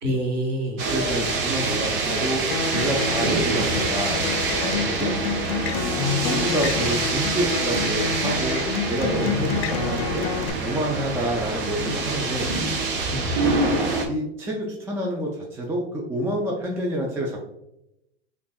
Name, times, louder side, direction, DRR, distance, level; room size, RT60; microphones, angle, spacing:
voice 1, 0.0-0.9 5.9-6.8 9.3-9.5 13.1-13.4, left 1 dB, 35° right, 2 dB, 1.1 m, -28 dB
sound 1, 0.8-14.1, right 3 dB, 55° right, 0.9 m, -26 dB
voice 2, 0.9-5.2 6.2-10.3 10.6-12.5 14.1-17.4, right 1 dB, 10° right, -2 dB, 0.3 m, -28 dB
sound 2, 2.1-2.2 2.8-2.9 3.1-8.4 8.9-11.3 11.6-12.2 12.4-13.4, right 1 dB, 80° right, 1.3 m, -34 dB
Acoustic guitar, 2.5-10.5, left 6 dB, 70° left, 0.5 m, -29 dB
5.3 x 2.3 x 2.2 m, 0.86 s
hypercardioid pair, 105°, 32 cm